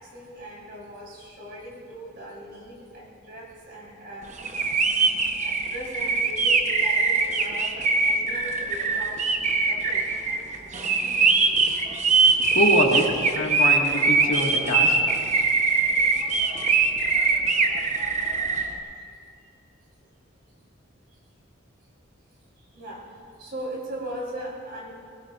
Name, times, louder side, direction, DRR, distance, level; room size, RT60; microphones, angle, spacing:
voice 1, 0.0-4.3 5.4-9.2 9.6-10.2 18.3-18.4 22.7-23.0 23.4-24.9, right 1 dB, 50° right, -3 dB, 3.7 m, -38 dB
sound 1, 4.4-18.7, right 4 dB, 35° right, 0.9 m, -22 dB
voice 2, 12.5-15.0, equal, 85° left, 0 dB, 1.9 m, -24 dB
20.5 x 18.0 x 2.5 m, 2.4 s
head